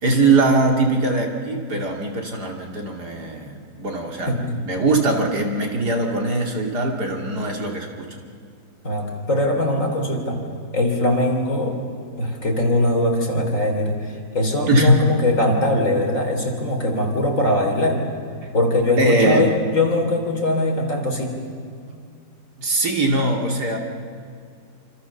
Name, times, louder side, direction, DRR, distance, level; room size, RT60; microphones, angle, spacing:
voice 1, 0.0-4.3 4.6-8.1 14.7-15.0 18.4-18.5 19.0-19.5 22.6-23.8, right 2 dB, 55° right, 1 dB, 2.9 m, -21 dB
voice 2, 4.3-4.6 8.8-10.4 10.7-11.8 12.2-18.0 18.5-21.3, left 1 dB, 40° left, 1 dB, 3.7 m, -21 dB
27.0 x 26.5 x 7.0 m, 2.3 s
omnidirectional pair, 2.1 m